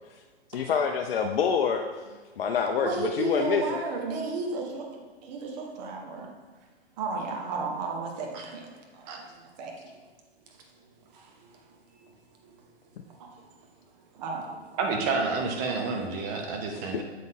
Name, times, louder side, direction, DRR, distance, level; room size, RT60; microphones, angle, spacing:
voice 1, 0.5-1.9 2.4-3.8 16.7-17.0, left 6 dB, 60° left, 4 dB, 0.5 m, -27 dB
voice 2, 2.8-6.3 7.0-9.2 9.6-9.9 11.1-11.3 12.0-12.1 13.2-13.4 14.1-14.6, right 3 dB, 40° right, 1 dB, 1.1 m, -34 dB
voice 3, 14.8-17.0, right 4 dB, 15° right, 2 dB, 0.3 m, -29 dB
7.4 x 3.9 x 3.6 m, 1.4 s
hypercardioid pair, 125°, 33 cm